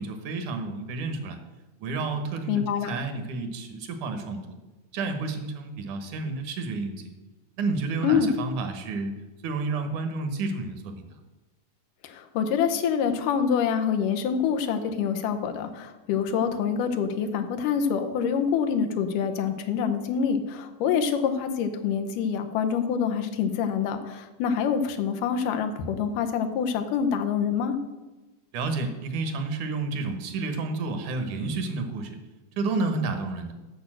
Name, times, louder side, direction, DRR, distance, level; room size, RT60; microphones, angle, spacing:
voice 1, 0.0-1.4 1.8-4.5 4.9-7.1 7.6-9.1 9.4-11.2 28.5-32.2 32.6-33.5, right 3 dB, 70° right, 7 dB, 2.5 m, -30 dB
voice 2, 2.5-2.9 8.0-8.3 12.0-27.8, left 7 dB, 85° left, 7 dB, 2.5 m, -26 dB
8.6 x 6.7 x 7.7 m, 1.1 s
omnidirectional pair, 3.6 m